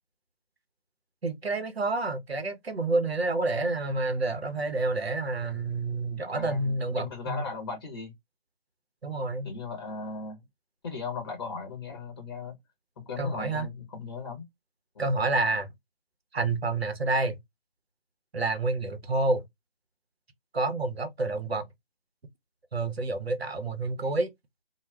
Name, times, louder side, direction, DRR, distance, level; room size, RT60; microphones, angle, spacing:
voice 1, 1.2-7.4 9.0-9.5 13.2-13.7 15.0-15.7 16.3-17.4 18.3-19.4 20.5-21.7 22.7-24.3, right 2 dB, 90° right, 0.8 m, -28 dB
voice 2, 6.3-8.1 9.4-10.4 10.8-12.6 13.0-14.5 14.9-15.0, left 4 dB, 25° left, 0.8 m, -37 dB
2.2 x 2.1 x 3.2 m
figure-of-eight pair, 150°, 30 cm